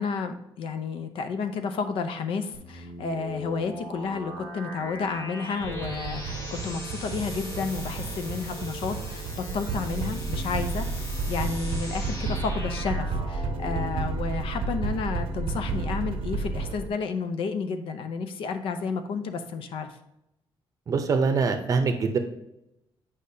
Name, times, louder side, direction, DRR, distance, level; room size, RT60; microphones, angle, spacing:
voice 1, 0.0-20.0, left 5 dB, 75° left, 8 dB, 0.6 m, -31 dB
sound 1, 2.5-14.4, left 1 dB, 35° left, 1.3 m, -40 dB
sound 2, 5.6-16.9, right 3 dB, 85° right, 0.6 m, -31 dB
voice 2, 20.9-22.2, right 4 dB, 40° right, 6 dB, 0.7 m, -24 dB
8.5 x 5.1 x 2.7 m, 0.86 s
cardioid pair, 165°, 9 cm